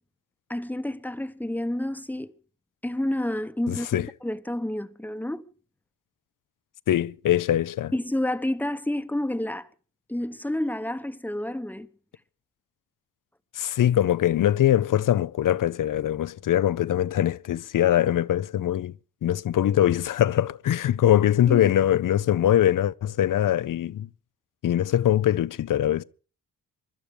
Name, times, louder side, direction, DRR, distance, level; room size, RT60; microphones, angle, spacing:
voice 1, 0.5-2.3 2.8-3.9 4.2-5.5 7.9-9.7 10.1-11.9 21.5-21.7, left 1 dB, 5° left, 1.0 m, -29 dB
voice 2, 3.7-4.1 6.9-7.9 13.5-18.9 19.2-24.1 24.6-26.0, left 11 dB, 60° left, 0.7 m, -22 dB
23.5 x 12.0 x 5.0 m
cardioid pair, 80°, 36 cm